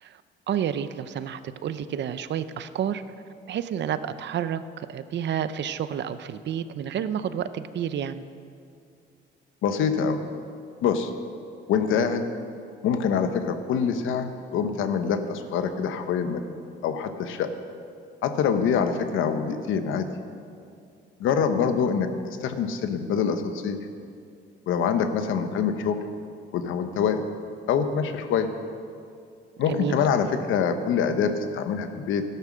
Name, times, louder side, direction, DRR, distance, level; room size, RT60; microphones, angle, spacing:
voice 1, 0.5-3.0 3.5-8.2 29.7-30.0, right 9 dB, 65° right, 13 dB, 0.7 m, -30 dB
voice 2, 9.6-10.2 10.8-11.1 11.7-12.3 12.8-16.4 16.8-17.5 18.2-20.1 21.2-23.8 24.7-26.0 26.5-27.2 27.7-28.5 29.6-32.3, left 6 dB, 85° left, 8 dB, 1.0 m, -25 dB
13.5 x 11.5 x 6.2 m, 2.4 s
cardioid pair, 90°, 20 cm